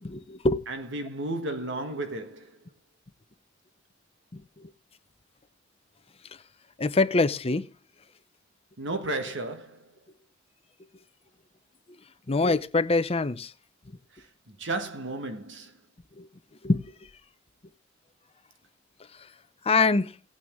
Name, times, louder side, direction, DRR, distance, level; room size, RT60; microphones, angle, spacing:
voice 1, 0.0-0.7 4.3-4.7 6.8-7.7 12.3-13.5 16.2-16.3 16.6-16.9 19.6-20.1, left 3 dB, 30° left, 0.7 m, -24 dB
voice 2, 0.6-2.6 8.8-9.9 14.1-14.2 14.6-15.8, right 2 dB, 65° right, 1.5 m, -33 dB
17.0 x 9.0 x 3.6 m
head